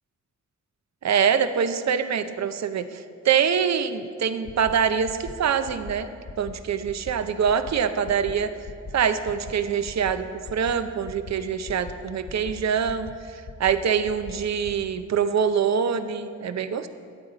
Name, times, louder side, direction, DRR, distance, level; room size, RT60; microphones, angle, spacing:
voice 1, 1.0-6.1 6.4-8.5 8.9-16.9, right 7 dB, 60° right, 11 dB, 0.6 m, -24 dB
sound 1, 4.4-4.7 5.0-5.3 5.7-5.9 6.2-6.5 6.8-7.1 7.4-7.7 8.0-8.3 8.6-8.9 9.2-9.5 9.8-10.1 10.4-10.7 11.0-11.3 11.7-11.9 12.3-12.5 12.8-13.1 13.4-13.7 14.0-14.3 14.6-14.7, left 4 dB, 45° left, 0.7 m, -39 dB
13.5 x 8.9 x 3.9 m, 2.2 s
cardioid pair, 80°, 30 cm